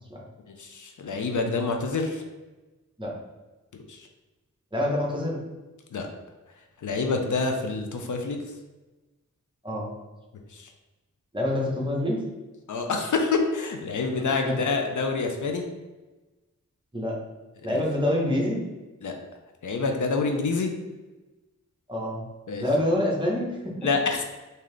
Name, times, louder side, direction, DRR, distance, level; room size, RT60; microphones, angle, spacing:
voice 1, 0.5-2.2 3.9-4.0 5.9-6.1 6.8-8.4 10.5-10.6 12.7-15.7 17.7-17.8 19.0-19.1 19.6-20.7 22.5-22.6 23.8-24.2, left 4 dB, 70° left, 4 dB, 0.6 m, -27 dB
voice 2, 4.7-5.4 9.6-9.9 11.3-12.2 14.4-14.6 16.9-17.2 17.6-18.6 21.9-22.2 22.6-23.5, left 1 dB, 15° right, -3 dB, 0.9 m, -26 dB
3.7 x 2.8 x 3.3 m, 1.1 s
wide cardioid pair, 80°, 31 cm